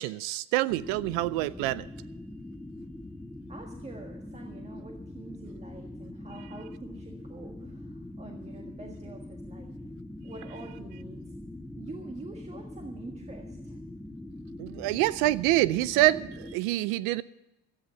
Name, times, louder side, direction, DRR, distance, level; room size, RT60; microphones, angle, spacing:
voice 1, 0.0-1.9 14.6-17.2, right 17 dB, 80° right, 19 dB, 0.6 m, -26 dB
sound 1, 0.7-16.6, left 1 dB, 5° left, 0.6 m, -43 dB
voice 2, 3.5-9.8 10.2-11.3 11.7-13.8, right 3 dB, 20° right, 2 dB, 1.5 m, -46 dB
13.0 x 9.6 x 6.8 m, 0.93 s
supercardioid pair, 115°, 36 cm